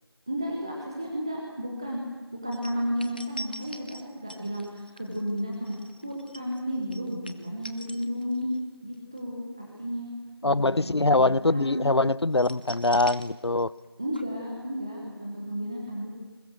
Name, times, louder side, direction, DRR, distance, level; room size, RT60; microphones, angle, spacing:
voice 1, 0.3-2.0 2.3-8.5 8.8-10.1 10.4-11.8 14.0-16.2, equal, 10° right, 1.1 m, -33 dB
sound 1, 2.5-8.6 8.9-9.2 12.3-13.9 14.1-14.2, equal, 20° left, 0.7 m, -43 dB
voice 2, 10.4-13.7, left 2 dB, 85° left, 0.7 m, -23 dB
28.5 x 21.5 x 6.4 m
figure-of-eight pair, 175°, 13 cm